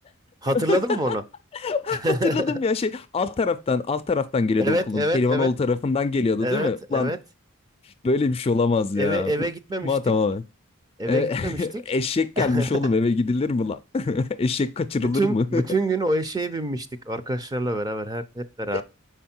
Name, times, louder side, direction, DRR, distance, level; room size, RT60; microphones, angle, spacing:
voice 1, 0.4-1.2 2.0-2.5 4.6-5.5 6.4-7.2 9.0-10.0 11.0-11.7 12.4-12.7 15.1-18.8, right 1 dB, 20° right, 0.6 m, -26 dB
voice 2, 1.5-7.1 8.0-9.3 9.8-10.4 11.1-15.6 18.7-18.8, left 3 dB, 25° left, 0.3 m, -24 dB
5.8 x 4.6 x 4.3 m
head